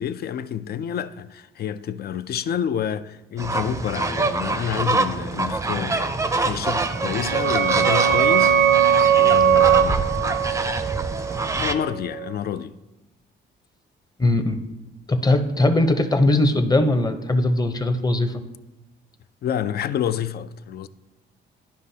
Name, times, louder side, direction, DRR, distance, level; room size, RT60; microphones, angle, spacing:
voice 1, 0.0-8.9 9.2-10.1 11.5-12.8 19.4-20.9, left 9 dB, 50° left, 0.4 m, -29 dB
sound 1, 3.4-11.7, right 3 dB, 15° right, 0.5 m, -25 dB
sound 2, 6.9-12.3, right 9 dB, 70° right, 0.6 m, -20 dB
voice 2, 14.2-14.6 15.1-18.4, left 2 dB, 20° left, 0.7 m, -20 dB
11.5 x 5.3 x 2.8 m
cardioid pair, 90°, 20 cm